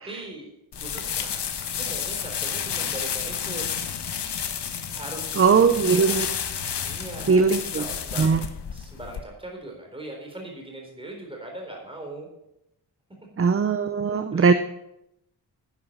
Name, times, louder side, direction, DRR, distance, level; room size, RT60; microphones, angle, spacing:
voice 1, 0.1-3.7 4.9-6.1 6.9-8.4 8.7-12.3 14.3-14.5, right 2 dB, 15° right, 0 dB, 3.9 m, -40 dB
sound 1, 0.7-9.2, left 7 dB, 85° left, 1.2 m, -31 dB
voice 2, 5.4-6.3 7.3-7.8 8.2-8.4 13.4-14.5, right 5 dB, 35° right, 9 dB, 0.6 m, -19 dB
11.0 x 9.3 x 7.2 m, 0.85 s
wide cardioid pair, 150°, 40 cm